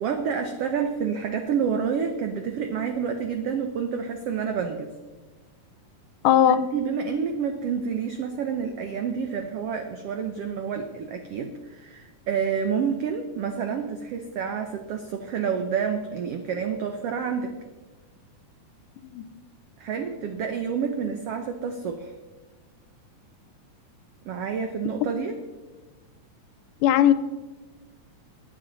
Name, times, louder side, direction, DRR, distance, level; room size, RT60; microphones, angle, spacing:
voice 1, 0.0-4.9 6.5-17.5 19.8-22.1 24.2-25.3, right 6 dB, 90° right, 6 dB, 1.3 m, -29 dB
voice 2, 6.2-6.6 19.1-19.2 26.8-27.1, left 10 dB, 80° left, 13 dB, 2.1 m, -18 dB
20.5 x 7.4 x 3.9 m, 1.3 s
omnidirectional pair, 3.8 m